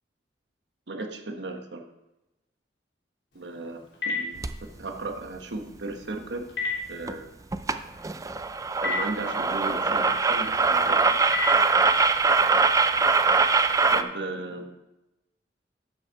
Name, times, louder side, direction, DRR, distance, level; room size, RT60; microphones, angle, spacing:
voice 1, 0.9-1.8 3.3-4.4 4.8-6.4 6.9-7.3 8.8-11.0 13.9-14.7, right 2 dB, 80° right, 5 dB, 1.1 m, -35 dB
Telephone, 3.3-12.2, left 3 dB, 90° left, 3.4 m, -37 dB
sound 1, 4.4-4.6 7.1-7.2 7.5-7.8 8.0-14.0, right 4 dB, 20° right, 0.4 m, -22 dB
12.0 x 5.5 x 4.6 m, 0.97 s
head